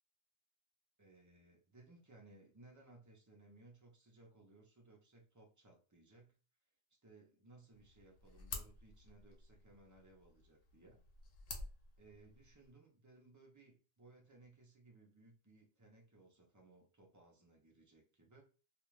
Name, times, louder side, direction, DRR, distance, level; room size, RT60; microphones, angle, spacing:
voice 1, 1.0-6.3 7.0-11.0 12.0-18.4, right 2 dB, 25° right, -1 dB, 0.4 m, -63 dB
sound 1, 7.7-12.7, left 4 dB, 70° left, 0.9 m, -51 dB
2.4 x 2.3 x 3.1 m, 0.37 s
omnidirectional pair, 1.4 m